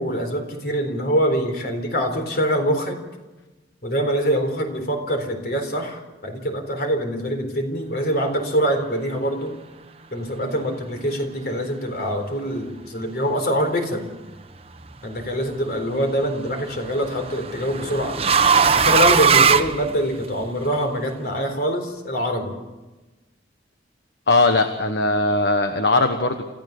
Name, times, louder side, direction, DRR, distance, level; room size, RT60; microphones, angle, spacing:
voice 1, 0.0-3.0 3.8-9.5 10.1-14.0 15.0-18.2 18.7-22.6, equal, 55° left, 5 dB, 4.0 m, -24 dB
sound 1, 14.5-15.0 16.5-20.4, right 6 dB, 35° right, 1.0 m, -19 dB
voice 2, 24.3-26.4, left 2 dB, 70° left, 6 dB, 1.4 m, -19 dB
28.0 x 15.0 x 6.8 m, 1.1 s
head